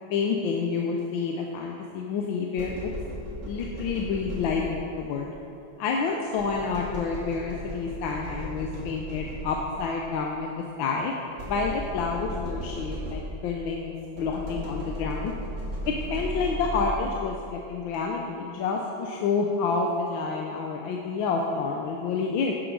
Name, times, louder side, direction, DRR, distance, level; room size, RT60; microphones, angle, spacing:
voice 1, 0.1-2.9 3.4-5.3 5.8-11.1 11.5-15.3 15.9-22.5, left 4 dB, 75° left, 0 dB, 1.4 m, -29 dB
sound 1, 2.6-5.0 6.4-10.0 11.4-13.6 14.2-17.2, equal, 35° right, 2.2 m, -36 dB
11.5 x 7.8 x 4.7 m, 2.6 s
omnidirectional pair, 2.3 m